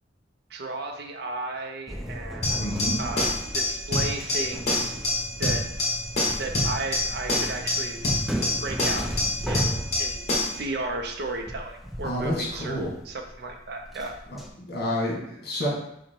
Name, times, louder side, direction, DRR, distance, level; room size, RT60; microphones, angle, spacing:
voice 1, 0.5-5.0 5.4-5.6 6.4-8.0 8.6-9.1 9.5-10.3 10.5-14.2, right 2 dB, 60° right, 4 dB, 0.5 m, -34 dB
sound 1, 1.9-14.5, equal, ahead, 0.4 m, -36 dB
sound 2, 2.4-10.6, left 2 dB, 35° left, 1.3 m, -26 dB
voice 2, 2.6-3.0 12.0-12.9 14.3-15.7, equal, 55° left, -3 dB, 1.5 m, -29 dB
5.8 x 2.1 x 4.3 m, 0.77 s
head